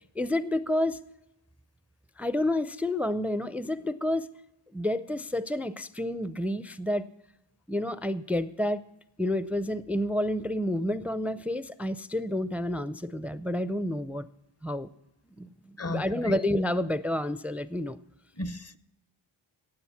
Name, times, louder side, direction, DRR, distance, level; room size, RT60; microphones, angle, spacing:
voice 1, 0.2-1.0 2.2-4.3 4.7-7.1 7.7-8.8 9.2-14.3 14.6-14.9 15.4-18.0, left 1 dB, 5° right, 0.4 m, -29 dB
voice 2, 15.8-16.4 18.4-18.8, left 2 dB, 30° left, 0.8 m, -34 dB
17.0 x 7.9 x 5.7 m
wide cardioid pair, 45°, 48 cm